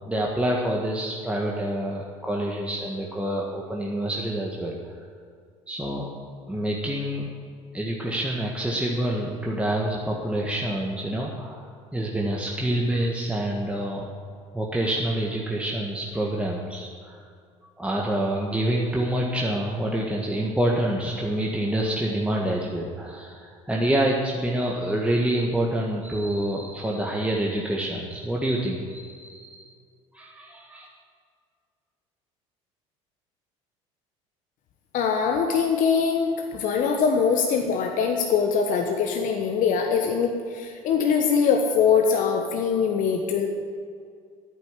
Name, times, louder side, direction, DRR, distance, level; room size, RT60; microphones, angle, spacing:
voice 1, 0.1-4.7 5.7-6.1 6.5-7.3 7.7-11.6 11.9-14.1 14.5-17.2 17.8-29.7 30.1-30.9, right 1 dB, 5° right, -2 dB, 1.7 m, -27 dB
voice 2, 34.9-43.5, left 6 dB, 55° left, 3 dB, 1.2 m, -23 dB
10.5 x 9.5 x 7.5 m, 2.2 s
hypercardioid pair, 65°, 17 cm